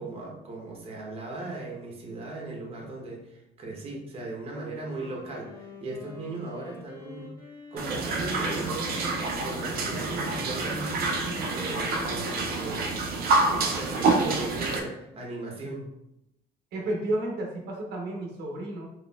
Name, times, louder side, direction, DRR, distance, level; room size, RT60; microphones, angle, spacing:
voice 1, 0.0-7.3 7.7-8.9 9.3-13.0 13.4-15.9, right 2 dB, 35° right, -1 dB, 0.9 m, -37 dB
Wind instrument woodwind instrument, 4.4-12.3, left 1 dB, 20° left, 1.3 m, -47 dB
sound 1, 7.8-12.6, left 7 dB, 80° left, 0.6 m, -45 dB
sound 2, 7.8-14.8, right 3 dB, 60° right, 0.6 m, -27 dB
voice 2, 16.7-18.9, right 1 dB, 80° right, -1 dB, 0.9 m, -31 dB
4.0 x 3.0 x 2.3 m, 0.88 s
cardioid pair, 110°, 17 cm